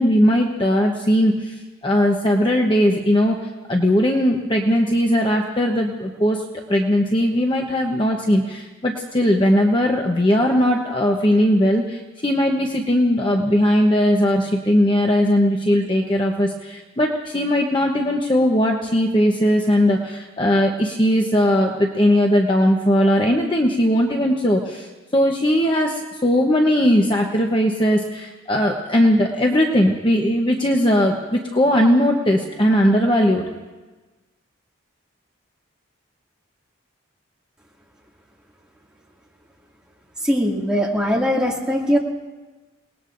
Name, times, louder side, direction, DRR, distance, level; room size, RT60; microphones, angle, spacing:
voice 1, 0.0-3.4 3.7-6.4 6.7-33.4, equal, 25° left, 1 dB, 0.9 m, -19 dB
voice 2, 40.2-42.0, equal, 5° right, -3 dB, 2.3 m, -20 dB
29.0 x 19.5 x 2.6 m, 1.2 s
head